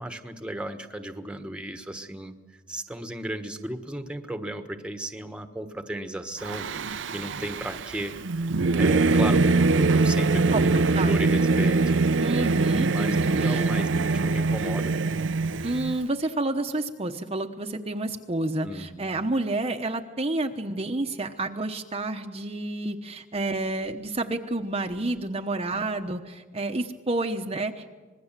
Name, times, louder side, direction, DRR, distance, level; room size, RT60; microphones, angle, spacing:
voice 1, 0.0-2.3 2.7-8.1 8.7-11.8 12.9-15.0 18.6-19.0, right 1 dB, 5° right, 7 dB, 1.3 m, -35 dB
Singing / Musical instrument, 6.4-16.0, right 3 dB, 70° right, 0.6 m, -23 dB
voice 2, 12.2-13.6 15.6-27.9, right 2 dB, 30° right, 4 dB, 1.0 m, -29 dB
25.5 x 20.5 x 7.4 m, 1.3 s
head